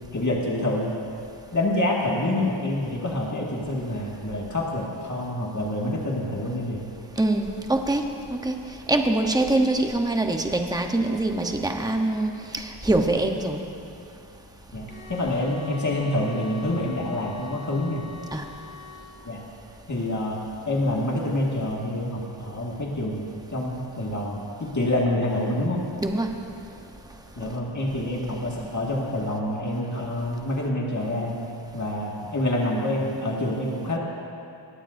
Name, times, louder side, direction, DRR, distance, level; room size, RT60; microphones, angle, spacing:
voice 1, 0.1-0.9 1.5-6.8 14.7-18.0 19.3-19.4 19.9-20.4 20.7-25.9 27.4-31.4 31.7-34.0, left 1 dB, 35° left, -3 dB, 2.0 m, -27 dB
voice 2, 7.2-8.0 8.3-8.5 8.9-13.6 18.3-18.4 26.0-26.3, right 2 dB, 10° right, 3 dB, 1.0 m, -24 dB
sound 1, 14.9-19.1, left 4 dB, 85° left, 3.1 m, -44 dB
22.0 x 16.0 x 2.7 m, 2.7 s
wide cardioid pair, 65°, 49 cm